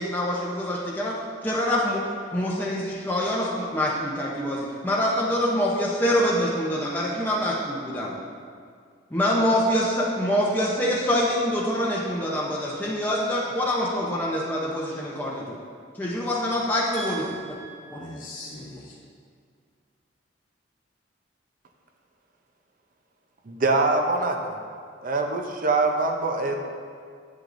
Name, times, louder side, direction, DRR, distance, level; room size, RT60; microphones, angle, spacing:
voice 1, 0.0-2.0 2.3-8.2 9.1-15.6 16.0-17.3 17.9-18.0, equal, 10° left, -6 dB, 0.7 m, -25 dB
voice 2, 16.9-18.9, right 1 dB, 45° left, -8 dB, 1.0 m, -39 dB
voice 3, 23.5-24.6 25.0-26.6, right 3 dB, 50° right, 4 dB, 0.6 m, -24 dB
8.8 x 7.9 x 2.6 m, 2.1 s
head